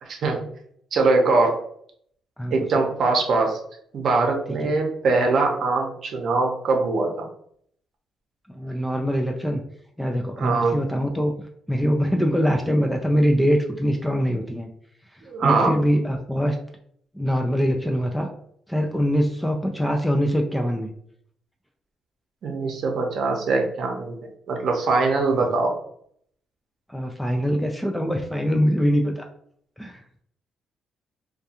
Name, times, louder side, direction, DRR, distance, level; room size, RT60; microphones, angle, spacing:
voice 1, 0.0-0.4 0.9-1.6 2.5-3.6 3.9-7.2 10.4-10.8 15.3-15.7 22.4-24.2 24.5-25.7, right 3 dB, 60° right, 2 dB, 0.7 m, -22 dB
voice 2, 8.5-9.6 10.0-11.3 11.7-14.7 15.1-16.6 17.1-18.3 18.7-20.9 25.4-25.5 26.9-29.3 29.8-30.0, equal, 5° left, 2 dB, 0.3 m, -23 dB
2.3 x 2.3 x 2.7 m, 0.66 s
cardioid pair, 90°, 0 cm